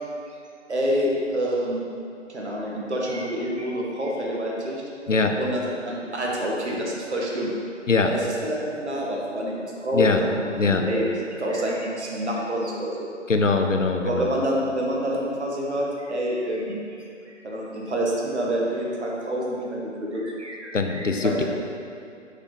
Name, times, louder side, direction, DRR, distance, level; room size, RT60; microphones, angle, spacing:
voice 1, 0.7-1.8 2.3-4.8 5.4-7.5 8.0-10.5 10.9-13.1 14.0-16.8 17.3-21.4, equal, 60° right, -3 dB, 1.7 m, -27 dB
voice 2, 13.3-14.3 20.7-21.4, left 4 dB, 75° left, 4 dB, 0.8 m, -22 dB
6.5 x 6.2 x 4.1 m, 2.6 s
figure-of-eight pair, 145°, 38 cm